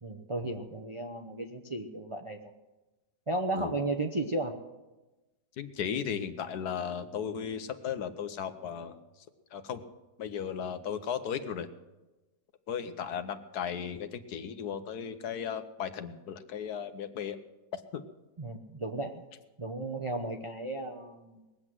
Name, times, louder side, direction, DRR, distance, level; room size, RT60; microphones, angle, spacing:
voice 1, 0.0-2.4 3.3-4.5 18.4-19.2 19.6-21.4, right 2 dB, 30° right, 4 dB, 0.6 m, -34 dB
voice 2, 5.6-9.0 9.5-9.8 10.2-11.7 12.7-17.4 17.7-18.0, left 8 dB, 70° left, 10 dB, 1.4 m, -36 dB
20.0 x 8.0 x 7.6 m, 1.1 s
omnidirectional pair, 1.8 m